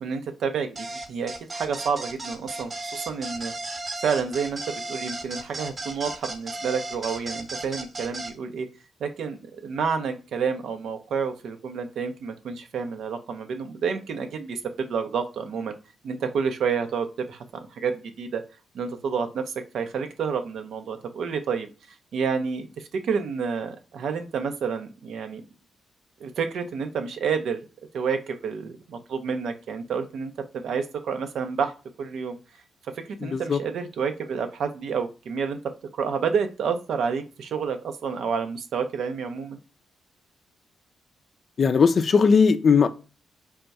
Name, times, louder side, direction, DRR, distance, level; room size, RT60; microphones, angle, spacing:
voice 1, 0.0-3.5 4.0-8.7 9.0-15.7 16.0-17.4 17.7-18.4 18.7-21.7 22.1-25.4 26.2-27.6 27.9-32.4 33.0-35.6 35.9-39.6, right 6 dB, 70° right, 0.5 m, -29 dB
sound 1, 0.8-8.3, right 2 dB, 40° right, 0.8 m, -35 dB
voice 2, 33.2-33.6 41.6-42.9, left 5 dB, 55° left, 0.4 m, -18 dB
3.4 x 2.2 x 4.0 m
hypercardioid pair, 45°, 0 cm